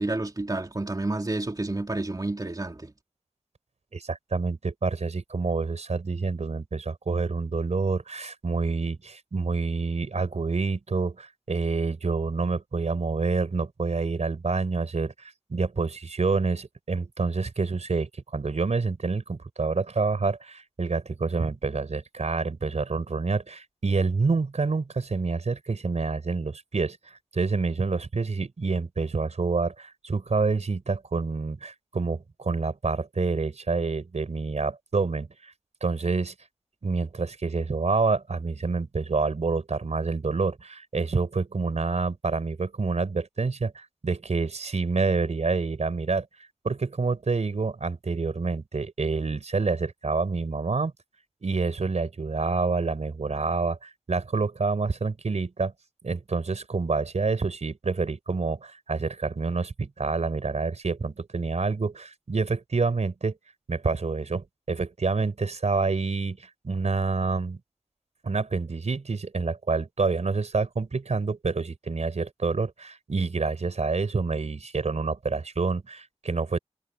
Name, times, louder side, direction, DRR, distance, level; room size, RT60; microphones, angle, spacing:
voice 1, 0.0-2.9, right 2 dB, 35° right, 3.2 m, -30 dB
voice 2, 3.9-35.5 35.8-36.3 36.8-46.3 46.6-50.9 51.4-55.7 56.0-63.4 63.7-67.6 68.2-76.6, right 4 dB, 75° right, 4.5 m, -27 dB
wide cardioid pair, 60°, 11 cm